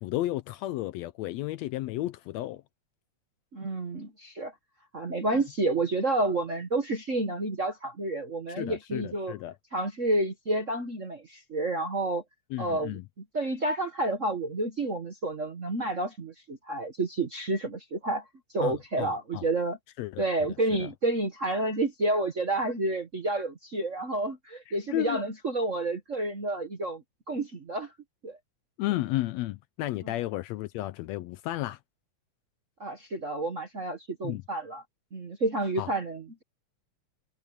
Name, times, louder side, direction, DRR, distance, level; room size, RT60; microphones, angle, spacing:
voice 1, 0.0-2.6 8.6-9.6 12.5-13.0 18.6-19.5 20.0-20.3 20.8-20.9 24.7-25.2 28.8-31.8 34.2-34.4 35.8-35.9, left 15 dB, 80° left, 1.7 m, -33 dB
voice 2, 3.5-4.5 4.9-9.3 9.7-12.2 12.6-13.0 13.3-18.2 18.5-19.8 20.2-27.9 28.2-28.4 30.0-30.1 32.8-34.8 35.1-36.4, right 2 dB, 40° right, 1.2 m, -30 dB
omnidirectional pair, 3.4 m